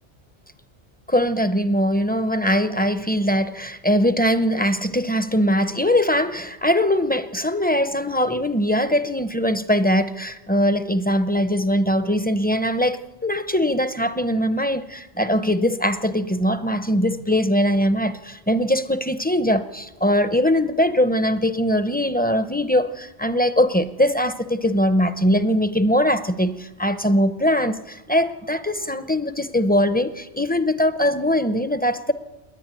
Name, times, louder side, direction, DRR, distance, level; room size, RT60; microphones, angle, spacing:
voice 1, 1.1-32.1, equal, 10° left, 11 dB, 0.5 m, -21 dB
28.0 x 10.5 x 9.2 m, 1.1 s
omnidirectional pair, 1.2 m